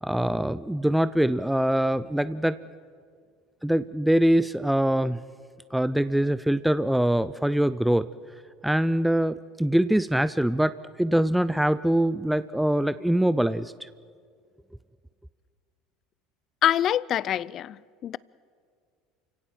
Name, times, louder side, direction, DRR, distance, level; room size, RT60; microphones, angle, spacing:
voice 1, 0.0-2.6 3.6-5.2 5.7-8.1 8.6-13.9, right 1 dB, 5° right, 0.5 m, -23 dB
voice 2, 16.6-18.2, left 11 dB, 50° left, 0.5 m, -25 dB
29.0 x 17.0 x 7.5 m
hypercardioid pair, 80°, 0 cm